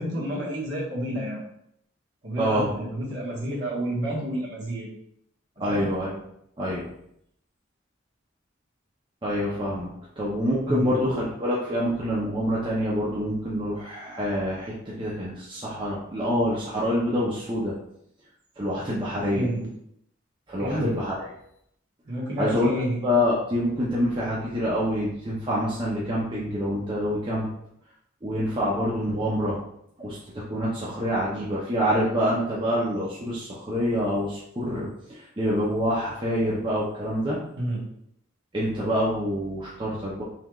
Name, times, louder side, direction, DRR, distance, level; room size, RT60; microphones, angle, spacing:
voice 1, 0.0-1.4 2.2-4.9 5.6-5.9 10.7-10.9 19.3-19.7 20.6-20.9 22.0-23.0 37.6-37.9, equal, 55° right, -6 dB, 1.4 m, -30 dB
voice 2, 2.4-2.7 5.6-6.1 6.6-6.9 9.2-17.7 18.6-19.5 20.5-21.1 22.4-22.7 23.0-27.5 28.2-29.6 30.0-37.4 38.5-40.2, equal, 25° right, -6 dB, 0.6 m, -26 dB
5.5 x 3.1 x 2.3 m, 0.73 s
head